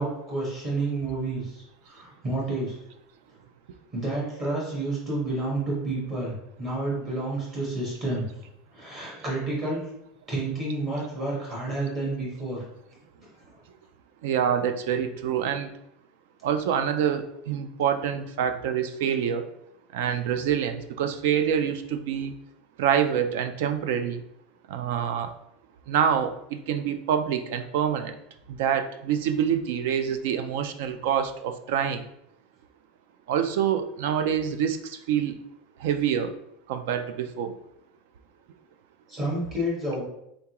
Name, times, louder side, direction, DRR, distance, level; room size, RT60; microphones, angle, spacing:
voice 1, 0.0-2.7 3.9-8.3 8.7-9.9 10.3-12.6 13.2-13.3 39.1-40.0, right 2 dB, 30° right, -6 dB, 1.4 m, -30 dB
voice 2, 14.2-15.7 16.4-19.4 19.9-22.3 22.8-24.2 24.7-25.3 25.9-28.1 28.5-32.0 33.3-35.3 35.8-36.3 36.7-37.5, right 8 dB, 70° right, 9 dB, 0.4 m, -26 dB
3.8 x 3.5 x 2.9 m, 0.79 s
supercardioid pair, 155°, 0 cm